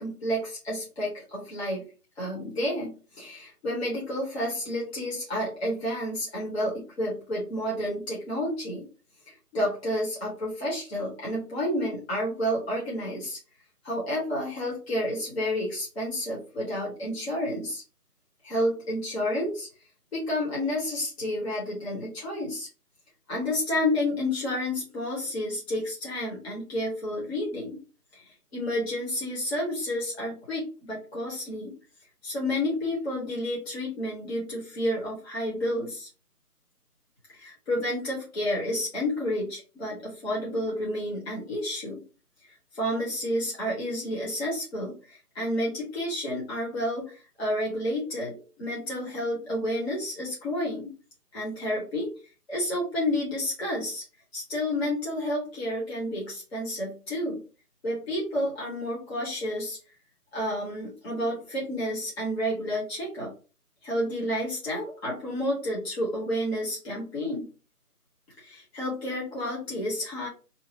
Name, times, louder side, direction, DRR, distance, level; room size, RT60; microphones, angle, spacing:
voice 1, 0.0-1.8 2.2-8.8 9.3-13.4 13.8-17.8 18.4-19.7 20.1-22.7 23.3-27.8 28.1-31.7 32.2-36.1 37.3-42.0 42.7-50.9 51.3-52.1 52.5-54.0 54.3-57.4 57.8-59.8 60.3-63.3 63.8-67.5 68.4-70.3, left 1 dB, 45° left, -5 dB, 1.0 m, -30 dB
2.7 x 2.1 x 2.8 m, 0.35 s
figure-of-eight pair, 165°, 46 cm